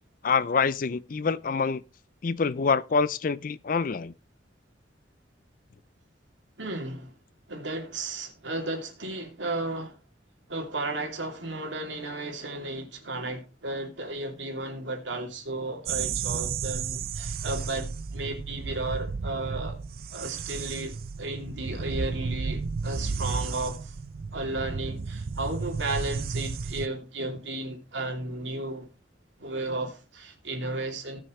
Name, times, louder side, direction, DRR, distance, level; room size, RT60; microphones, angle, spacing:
voice 1, 0.2-1.8 2.2-4.1, left 5 dB, 45° left, 0.5 m, -26 dB
voice 2, 6.6-7.1 7.5-10.0 10.5-19.8 20.1-23.9 24.3-28.9 29.4-31.2, right 2 dB, 85° right, 2.8 m, -34 dB
sound 1, 15.9-26.9, right 5 dB, 50° right, 0.5 m, -33 dB
18.5 x 6.4 x 3.2 m
head